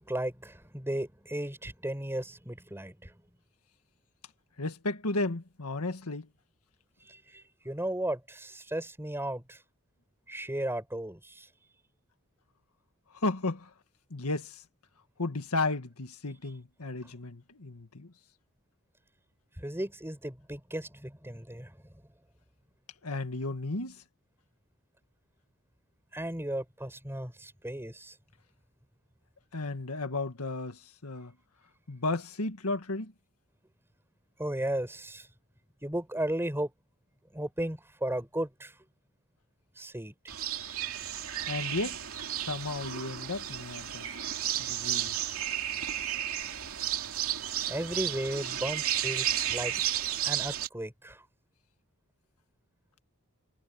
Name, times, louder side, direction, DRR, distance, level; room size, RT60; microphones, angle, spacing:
voice 1, 0.0-3.1 7.1-9.6 10.3-11.5 19.6-21.8 26.1-28.2 34.4-35.3 35.8-36.7 37.3-38.7 39.8-40.1 47.7-49.7 50.2-51.2, right 1 dB, 10° right, 5.6 m, -35 dB
voice 2, 4.6-6.3 13.1-13.7 14.1-14.6 15.2-18.1 23.0-24.0 29.5-31.3 31.9-33.1 41.5-42.0 42.4-44.1 44.6-45.2, left 2 dB, 90° left, 1.8 m, -34 dB
sound 1, 40.3-50.7, right 11 dB, 70° right, 3.0 m, -33 dB
head